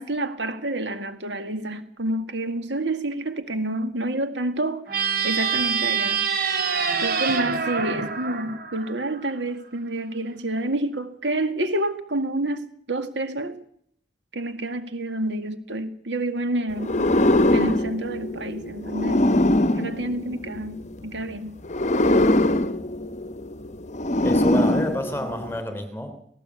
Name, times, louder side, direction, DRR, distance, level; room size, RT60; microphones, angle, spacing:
voice 1, 0.0-4.8 5.2-6.2 7.0-13.6 14.3-17.1 17.5-19.3 19.7-21.6, right 1 dB, 70° right, 9 dB, 2.0 m, -28 dB
sound 1, 4.9-9.3, right 6 dB, 55° right, 3.0 m, -26 dB
sound 2, 16.8-20.9 21.6-25.6, left 1 dB, 40° left, 0.9 m, -22 dB
voice 2, 24.2-26.2, left 1 dB, 15° left, 9 dB, 3.2 m, -29 dB
18.0 x 17.5 x 8.3 m, 0.65 s
head